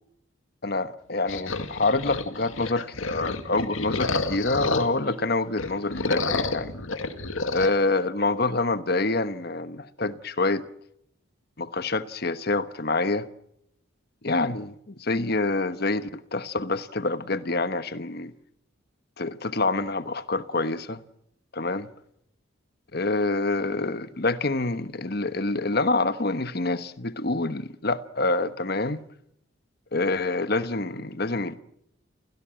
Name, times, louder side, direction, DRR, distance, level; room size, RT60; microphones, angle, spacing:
voice 1, 0.6-6.8 7.5-10.6 11.6-13.3 14.2-18.3 19.2-21.0 21.5-21.9 22.9-29.0 29.9-31.6, left 2 dB, 50° left, 1.2 m, -26 dB
sound 1, 1.3-5.1 5.5-7.7, left 3 dB, 75° left, 2.0 m, -29 dB
30.0 x 16.5 x 7.6 m
head